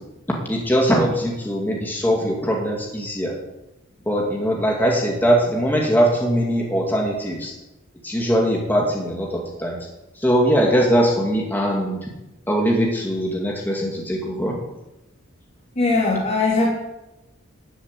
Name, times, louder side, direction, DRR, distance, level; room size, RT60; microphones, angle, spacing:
voice 1, 0.5-3.4 4.1-7.5 8.0-9.8 10.2-12.0 12.5-14.6, equal, 10° left, -2 dB, 2.3 m, -21 dB
voice 2, 15.7-16.7, left 3 dB, 30° left, -4 dB, 2.8 m, -19 dB
14.0 x 7.3 x 9.8 m, 0.97 s
head